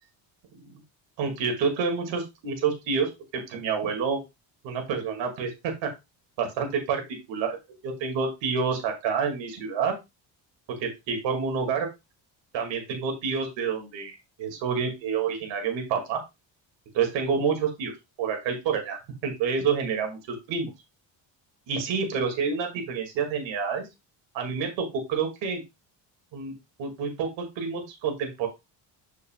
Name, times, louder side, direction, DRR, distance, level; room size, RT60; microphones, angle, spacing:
voice 1, 1.2-3.1 3.5-4.2 4.6-5.9 6.4-7.0 7.3-7.6 7.8-9.9 10.8-11.9 12.5-16.2 16.9-17.9 18.2-20.2 20.5-20.7 21.7-23.8 24.3-25.6 26.3-26.5 26.8-28.5, right 5 dB, 90° right, 3 dB, 2.4 m, -28 dB
7.5 x 6.4 x 2.4 m, 0.23 s
cardioid pair, 110°, 43 cm